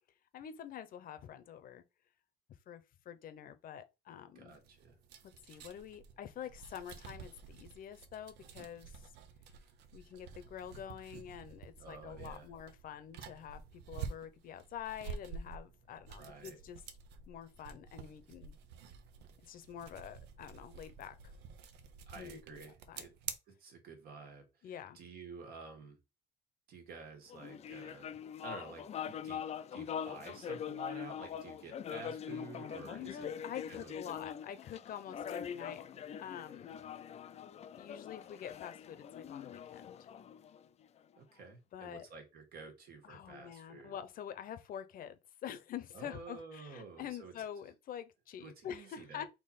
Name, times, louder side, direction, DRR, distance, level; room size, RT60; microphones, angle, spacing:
voice 1, 0.3-1.8 2.7-4.6 5.5-9.0 9.9-16.8 17.3-18.6 19.4-21.2 22.2-23.1 24.6-25.0 32.9-35.8 36.2-36.8 37.7-40.1 41.7-42.1 43.0-49.3, left 9 dB, 55° left, 0.8 m, -46 dB
voice 2, 4.3-5.0 11.8-12.5 16.2-16.6 22.1-23.1 23.5-26.0 26.7-28.2 28.4-33.3 33.7-33.9 34.2-34.3 41.2-43.9 45.9-47.3 48.4-49.3, right 4 dB, 65° right, 1.6 m, -51 dB
sound 1, 4.5-23.3, right 6 dB, 85° right, 0.7 m, -49 dB
sound 2, 27.3-41.0, left 8 dB, 40° left, 0.4 m, -43 dB
3.8 x 2.9 x 4.2 m
cardioid pair, 110°, 17 cm